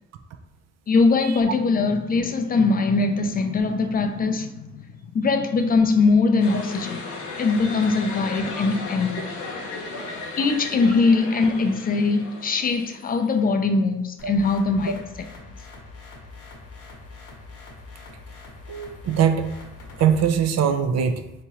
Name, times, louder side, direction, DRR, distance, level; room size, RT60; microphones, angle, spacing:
voice 1, 0.9-7.0 7.4-9.3 10.4-15.0, left 4 dB, 30° left, 0.3 m, -21 dB
sound 1, 6.4-13.5, left 3 dB, 85° left, 0.7 m, -35 dB
sound 2, 14.2-20.4, left 3 dB, 50° left, 0.9 m, -43 dB
voice 2, 18.7-19.5 20.0-21.4, right 8 dB, 60° right, 0.5 m, -22 dB
3.5 x 2.9 x 2.9 m
cardioid pair, 90°, 30 cm